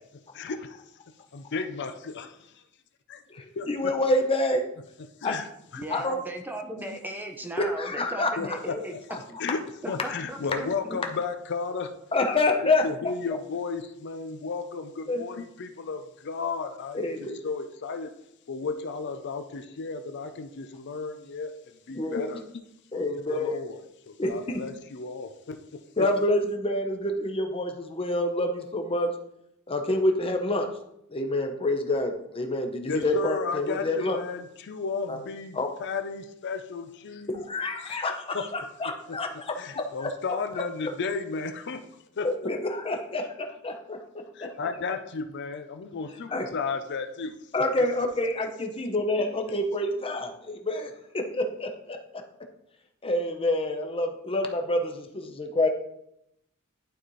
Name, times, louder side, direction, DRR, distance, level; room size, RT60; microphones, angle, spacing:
voice 1, 0.3-0.8 1.3-2.0 3.6-3.9 5.2-5.5 5.7-5.8 6.8-7.0 8.4-9.0 9.4-11.9 12.6-18.1 18.5-22.4 23.3-23.8 24.1-26.1 32.9-37.3 37.8-38.5 39.1-39.2 39.6-41.8 42.2-42.5 43.2-43.3 44.3-47.4, left 4 dB, 55° left, 7 dB, 0.5 m, -34 dB
voice 2, 3.7-4.6 5.2-5.3 5.9-6.2 7.6-8.5 9.1-9.2 12.1-13.1 15.1-15.2 16.9-17.3 21.9-22.3 22.9-23.6 24.2-24.6 26.0-29.1 29.7-30.7 31.1-34.2 35.1-35.2 35.5-35.7 37.3-40.1 40.9-41.0 42.2-44.0 46.3-46.5 47.5-52.0 53.0-55.7, left 1 dB, 25° left, 4 dB, 0.8 m, -27 dB
voice 3, 5.8-8.9 9.3-9.4 9.8-11.0, right 1 dB, 10° right, 4 dB, 0.7 m, -37 dB
11.5 x 4.2 x 3.1 m, 0.78 s
head